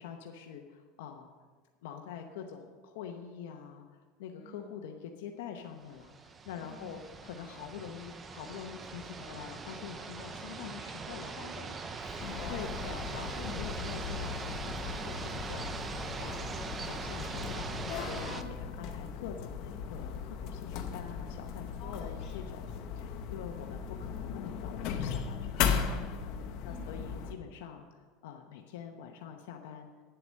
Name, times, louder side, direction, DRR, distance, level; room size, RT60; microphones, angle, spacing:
voice 1, 0.0-1.3 1.8-11.3 12.5-16.5 16.8-22.6 22.9-26.2 26.6-29.9, left 8 dB, 85° left, 4 dB, 0.9 m, -45 dB
voice 2, 4.3-4.7 6.6-7.0 11.2-12.9 13.8-13.9 18.3-18.6 21.8-22.4 22.8-22.9 26.6-27.0, left 2 dB, 40° left, -2 dB, 2.5 m, -50 dB
sound 1, 5.9-18.4, right 4 dB, 20° right, 0.6 m, -41 dB
sound 2, 12.2-27.3, left 7 dB, 55° left, 0.9 m, -37 dB
9.7 x 7.7 x 6.4 m, 1.5 s
supercardioid pair, 150°, 0 cm